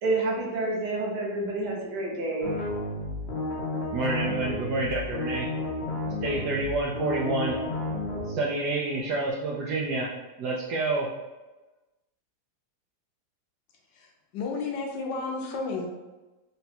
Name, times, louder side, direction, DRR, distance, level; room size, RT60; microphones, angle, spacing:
voice 1, 0.0-2.5, right 2 dB, 65° right, -2 dB, 1.1 m, -28 dB
sound 1, 2.4-8.4, left 2 dB, 55° left, 0.7 m, -32 dB
voice 2, 3.9-5.5 6.2-7.6 8.3-10.1 10.4-11.1, right 2 dB, 85° right, -3 dB, 0.9 m, -28 dB
voice 3, 14.3-15.9, left 4 dB, 75° left, 1 dB, 1.1 m, -32 dB
3.8 x 2.2 x 4.1 m, 1.1 s
omnidirectional pair, 2.3 m